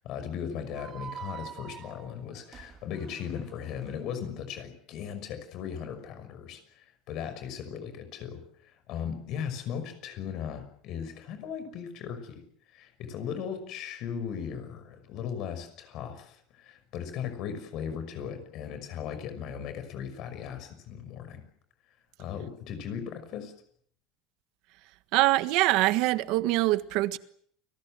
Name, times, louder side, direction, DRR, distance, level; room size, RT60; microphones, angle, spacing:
voice 1, 0.0-21.4 22.2-23.5, left 8 dB, 50° left, 5.9 m, -37 dB
sound 1, 0.7-3.9, right 8 dB, 30° right, 2.6 m, -45 dB
voice 2, 25.1-27.2, right 18 dB, 65° right, 1.5 m, -24 dB
29.5 x 21.5 x 7.8 m
cardioid pair, 155°, 0 cm